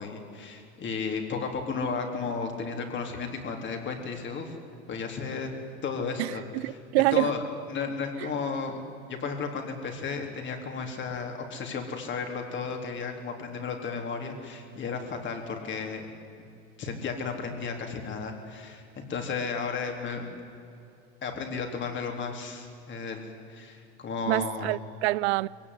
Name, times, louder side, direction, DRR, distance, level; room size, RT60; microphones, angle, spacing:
voice 1, 0.0-4.5 4.9-5.5 5.8-6.8 7.1-7.4 7.7-8.8 9.1-16.1 16.8-20.3 21.2-24.8, left 5 dB, 35° left, 3.8 m, -34 dB
voice 2, 6.2-7.3 24.3-25.5, right 21 dB, 70° right, 0.5 m, -26 dB
22.0 x 17.5 x 9.8 m
supercardioid pair, 110°, 33 cm